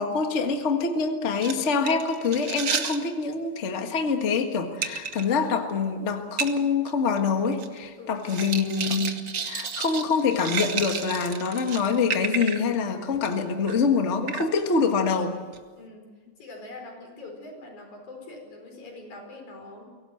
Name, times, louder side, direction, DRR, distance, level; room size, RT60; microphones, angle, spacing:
voice 1, 0.0-15.4, left 5 dB, 30° left, 5 dB, 1.4 m, -25 dB
sound 1, 1.4-3.0 4.8-5.2 5.7-5.8 6.4-6.5 6.9-7.0 7.2-7.8 8.2-12.7 13.1-13.3 13.7-13.9 14.3-14.6 15.5-15.6, right 6 dB, 85° right, 0.7 m, -31 dB
voice 2, 8.0-8.3 15.8-16.1 16.4-19.9, left 2 dB, 90° left, 2 dB, 6.2 m, -43 dB
24.0 x 17.5 x 7.7 m, 1.4 s
omnidirectional pair, 3.3 m